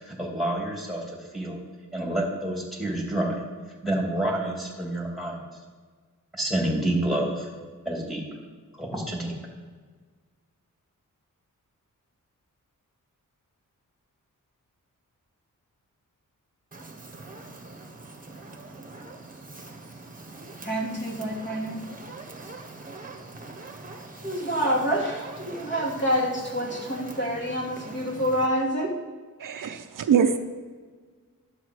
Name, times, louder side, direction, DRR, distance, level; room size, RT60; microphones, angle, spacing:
voice 1, 0.1-1.0 1.3-1.6 1.9-3.4 3.8-5.4 6.3-7.5 7.8-8.2 8.8-9.3, right 1 dB, ahead, 2.8 m, -28 dB
Fire, 16.7-28.5, right 3 dB, 25° right, 1.3 m, -43 dB
voice 2, 20.6-21.8 24.2-28.9, equal, 35° left, 2.5 m, -27 dB
voice 3, 29.4-30.4, right 7 dB, 70° right, 0.7 m, -23 dB
12.0 x 7.1 x 4.8 m
wide cardioid pair, 110°, 33 cm